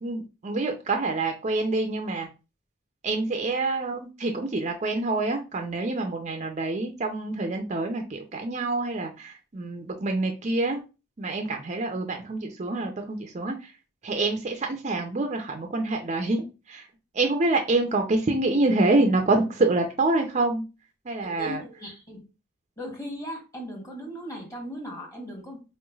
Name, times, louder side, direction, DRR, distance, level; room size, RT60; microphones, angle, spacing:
voice 1, 0.0-2.3 3.0-10.8 11.2-13.7 14.0-16.9 17.1-20.6 21.1-21.6, right 2 dB, 35° right, 0.5 m, -26 dB
voice 2, 21.4-22.3 22.8-25.6, equal, 15° left, 1.2 m, -37 dB
4.4 x 3.1 x 2.3 m
head